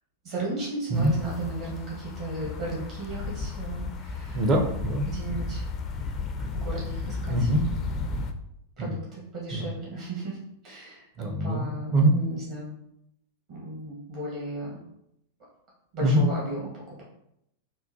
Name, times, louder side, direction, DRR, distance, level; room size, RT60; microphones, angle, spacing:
voice 1, 0.2-4.5 5.1-5.7 6.4-7.5 8.8-10.4 10.6-12.7 13.5-14.8 15.9-17.0, right 2 dB, 50° right, -4 dB, 1.0 m, -35 dB
sound 1, 0.9-8.3, left 3 dB, 35° left, 0.3 m, -34 dB
voice 2, 4.3-5.1 7.3-7.6 8.8-8.9 9.5-9.7 11.2-12.2 16.0-16.2, right 1 dB, 35° right, 3 dB, 0.5 m, -23 dB
3.7 x 2.2 x 2.6 m, 0.78 s
figure-of-eight pair, 95°, 0 cm